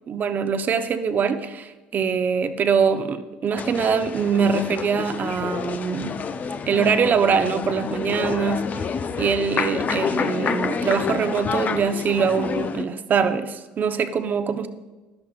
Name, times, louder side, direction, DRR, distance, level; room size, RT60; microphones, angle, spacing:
voice 1, 0.1-6.1 6.7-8.8 9.2-14.7, right 6 dB, 45° right, 10 dB, 0.8 m, -23 dB
sound 1, 3.6-12.8, left 6 dB, 40° left, 0.6 m, -28 dB
11.5 x 11.5 x 2.4 m, 1.2 s
hypercardioid pair, 70°, 4 cm